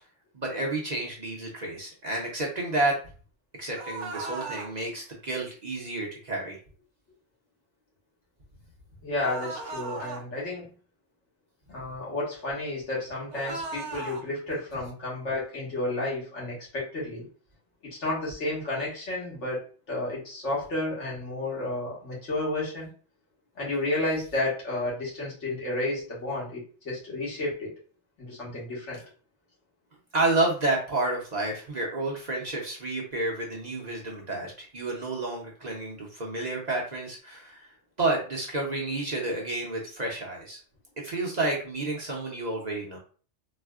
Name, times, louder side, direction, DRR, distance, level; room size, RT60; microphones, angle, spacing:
voice 1, 0.3-3.0 3.6-6.6 30.1-37.7 38.0-40.6 41.0-43.0, right 2 dB, 45° right, -1 dB, 0.7 m, -30 dB
sound 1, 3.7-4.7 9.2-10.2 13.3-14.2, right 3 dB, 80° right, 0.9 m, -36 dB
voice 2, 9.0-10.7 11.7-17.3 17.9-22.9 23.6-27.7 28.2-29.0, left 2 dB, 85° left, -5 dB, 1.6 m, -31 dB
4.1 x 2.1 x 2.3 m, 0.39 s
omnidirectional pair, 1.2 m